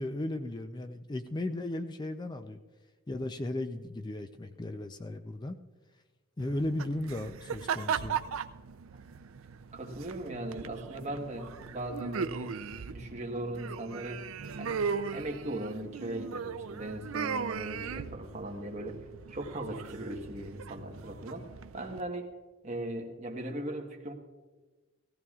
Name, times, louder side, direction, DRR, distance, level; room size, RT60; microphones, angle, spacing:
voice 1, 0.0-2.6 3.1-5.6 6.4-8.2, left 1 dB, 20° left, 8 dB, 0.4 m, -35 dB
sound 1, 6.4-22.0, right 6 dB, 75° right, 0.5 m, -38 dB
voice 2, 9.7-12.6 12.9-14.2 14.6-14.8 15.1-21.5 21.7-22.3 22.6-24.1, right 1 dB, 35° right, 1 dB, 1.3 m, -38 dB
17.5 x 15.5 x 2.4 m, 1.3 s
head